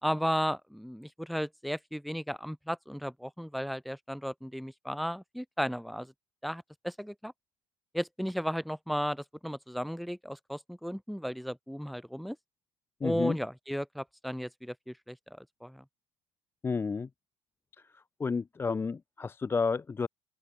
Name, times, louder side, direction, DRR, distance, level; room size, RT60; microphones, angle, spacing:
voice 1, 0.0-6.1 6.4-7.3 7.9-12.4 13.0-15.8, equal, ahead, 1.9 m, -35 dB
voice 2, 13.0-13.4 16.6-17.1 18.2-20.1, left 5 dB, 20° left, 0.6 m, -31 dB
open air
supercardioid pair, 110°, 11 cm